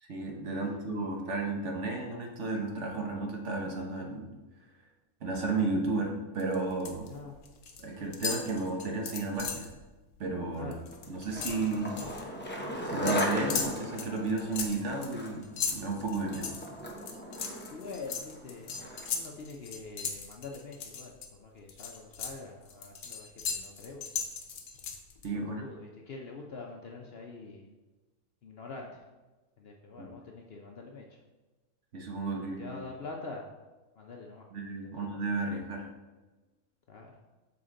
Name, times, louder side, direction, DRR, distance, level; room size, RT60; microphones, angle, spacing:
voice 1, 0.0-4.3 5.2-7.1 7.8-9.7 10.2-10.7 11.1-12.0 12.8-15.4 15.7-16.5 25.2-25.6 30.0-30.1 31.9-32.7 34.5-35.9, right 3 dB, 55° right, 1 dB, 1.2 m, -33 dB
sound 1, 6.4-7.1 7.4-7.8 8.1-9.7 10.1-10.3 10.6-12.2 13.1-21.3 21.7-25.3, left 6 dB, 75° left, 1.2 m, -37 dB
Skateboard, 10.9-19.3, equal, 10° left, 0.6 m, -38 dB
voice 2, 17.7-18.8 19.1-24.2 25.3-27.7 28.4-29.0 29.6-31.2 32.3-33.4 34.0-34.5 34.8-35.0 36.9-37.1, left 3 dB, 55° left, 1 dB, 0.7 m, -45 dB
7.1 x 4.2 x 3.7 m, 1.2 s
omnidirectional pair, 1.5 m